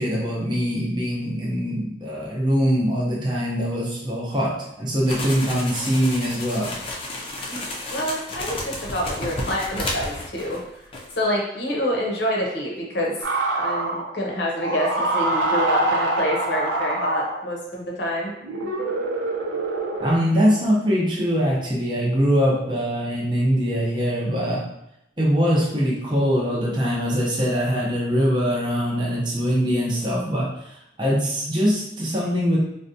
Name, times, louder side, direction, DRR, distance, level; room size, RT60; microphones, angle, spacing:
voice 1, 0.0-6.7 20.0-24.7 25.2-32.6, equal, 25° right, -5 dB, 0.6 m, -22 dB
sound 1, 5.1-10.7 10.9-11.1, left 2 dB, 30° left, 0.4 m, -32 dB
voice 2, 7.5-10.6 11.1-13.1 13.5-18.3, equal, 70° left, -1 dB, 0.7 m, -26 dB
sound 2, 13.2-14.1 14.6-17.5 18.4-20.1, right 2 dB, 90° right, 0.6 m, -25 dB
3.8 x 2.2 x 2.6 m, 0.81 s
head